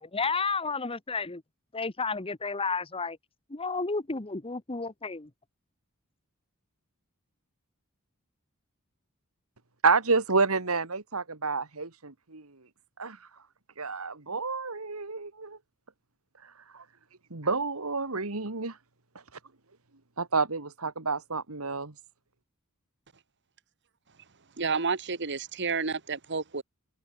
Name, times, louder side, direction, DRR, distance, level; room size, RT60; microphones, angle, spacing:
voice 1, 0.0-1.4 1.7-3.2 3.5-5.3, left 4 dB, 25° left, 1.3 m, -31 dB
voice 2, 9.8-12.7 13.0-13.3 13.8-15.6 16.4-16.8 17.3-18.8 20.2-21.9, right 4 dB, 85° right, 2.2 m, -29 dB
voice 3, 24.6-26.6, right 5 dB, 55° right, 1.9 m, -30 dB
head